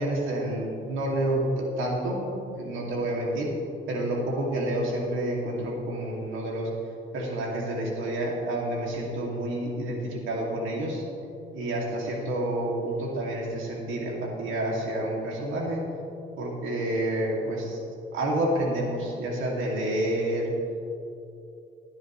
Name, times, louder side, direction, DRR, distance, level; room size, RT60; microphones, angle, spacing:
voice 1, 0.0-2.2 2.5-3.5 3.9-6.7 7.1-11.0 11.5-15.8 16.4-17.8 18.1-20.5, right 1 dB, 85° right, -2 dB, 2.5 m, -29 dB
17.5 x 9.6 x 3.2 m, 2.7 s
cardioid pair, 90°, 20 cm